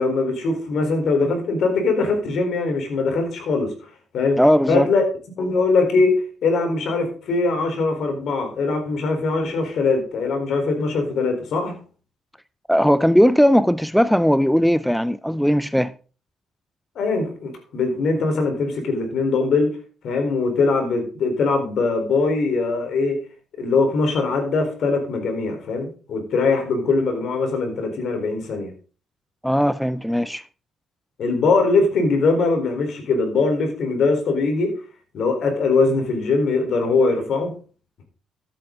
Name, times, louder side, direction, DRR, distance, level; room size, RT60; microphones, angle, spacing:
voice 1, 0.0-3.7 4.1-4.4 4.7-5.0 5.4-11.7 17.0-19.7 20.0-23.2 23.5-28.7 31.2-34.7 35.1-37.5, left 3 dB, 65° left, 4.1 m, -21 dB
voice 2, 4.4-4.9 12.7-15.9 29.4-30.4, equal, ahead, 0.4 m, -18 dB
13.5 x 8.7 x 3.9 m
cardioid pair, 90°, 0 cm